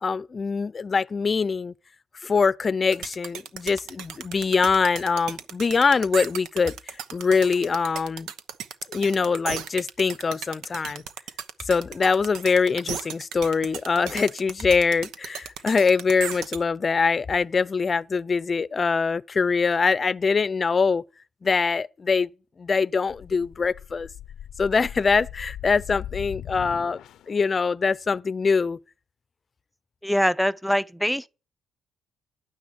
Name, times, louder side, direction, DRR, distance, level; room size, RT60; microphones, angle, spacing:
voice 1, 0.0-1.7 2.2-6.7 7.1-8.3 8.9-11.0 11.7-21.0 21.4-22.3 22.6-24.1 24.6-27.0 27.3-28.8, left 5 dB, 35° left, 0.6 m, -23 dB
sound 1, 2.9-16.6, right 8 dB, 85° right, 1.0 m, -35 dB
sound 2, 23.1-27.4, left 11 dB, 80° left, 0.6 m, -39 dB
voice 2, 30.0-31.3, equal, ahead, 0.6 m, -23 dB
11.5 x 9.5 x 8.7 m
cardioid pair, 90°, 0 cm